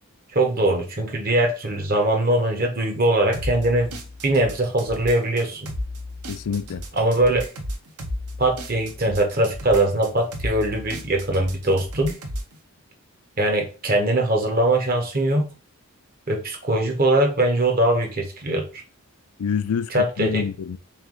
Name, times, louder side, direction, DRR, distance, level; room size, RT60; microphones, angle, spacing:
voice 1, 0.3-5.7 6.9-7.5 8.4-12.1 13.4-15.5 16.3-18.8 19.9-20.5, right 1 dB, 40° right, 0.7 m, -21 dB
sound 1, 3.3-12.5, left 1 dB, 80° right, 0.8 m, -34 dB
voice 2, 6.3-6.8 19.4-20.8, left 7 dB, 80° left, 0.4 m, -27 dB
3.5 x 3.2 x 3.7 m
head